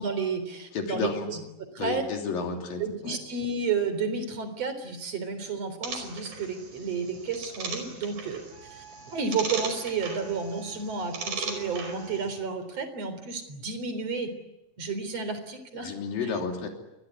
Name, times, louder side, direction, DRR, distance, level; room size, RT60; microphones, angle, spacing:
voice 1, 0.0-1.4 1.7-2.0 2.8-8.4 8.7-14.3 14.8-15.9, right 5 dB, 45° right, 10 dB, 4.7 m, -31 dB
voice 2, 0.7-1.3 1.8-3.2 15.7-16.7, left 5 dB, 80° left, 3 dB, 5.0 m, -32 dB
sound 1, 5.8-12.3, right 4 dB, 75° right, 6.6 m, -38 dB
Wind instrument woodwind instrument, 8.5-12.4, right 3 dB, 10° left, 4.8 m, -52 dB
27.5 x 22.0 x 9.6 m, 0.93 s
omnidirectional pair, 4.0 m